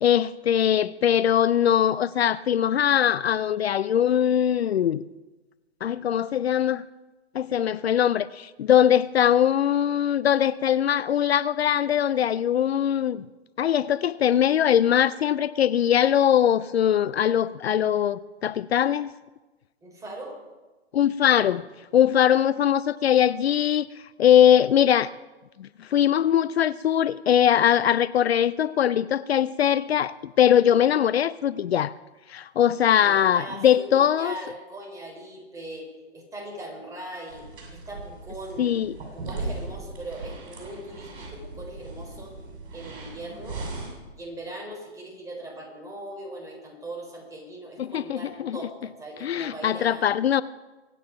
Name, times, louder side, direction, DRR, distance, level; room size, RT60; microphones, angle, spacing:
voice 1, 0.0-5.0 5.8-6.8 7.3-13.2 13.6-19.1 20.9-21.6 21.9-23.9 24.2-25.1 25.6-31.9 32.3-34.3 38.6-39.0 47.8-48.6 49.2-50.4, left 10 dB, 65° left, 17 dB, 0.5 m, -21 dB
voice 2, 19.8-20.4 33.0-35.9 36.1-37.4 37.9-38.8 39.1-42.3 42.7-43.7 44.2-50.1, right 1 dB, 10° right, 0 dB, 4.2 m, -40 dB
sound 1, 37.3-43.9, right 3 dB, 50° right, 7.2 m, -38 dB
23.0 x 9.3 x 5.8 m, 1.2 s
figure-of-eight pair, 130°, 33 cm